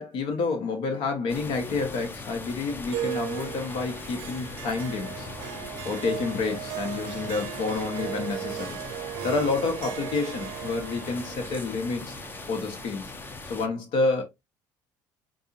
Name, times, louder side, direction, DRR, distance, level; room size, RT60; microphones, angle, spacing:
voice 1, 0.0-5.3 5.8-8.8 9.2-12.2 12.5-13.1 13.5-14.2, left 3 dB, 70° left, 1.2 m, -29 dB
sound 1, 1.3-13.7, left 3 dB, 25° left, 0.7 m, -40 dB
Harp, 2.9-13.5, right 14 dB, 75° right, 0.5 m, -38 dB
4.8 x 2.6 x 2.8 m
supercardioid pair, 100°, 9 cm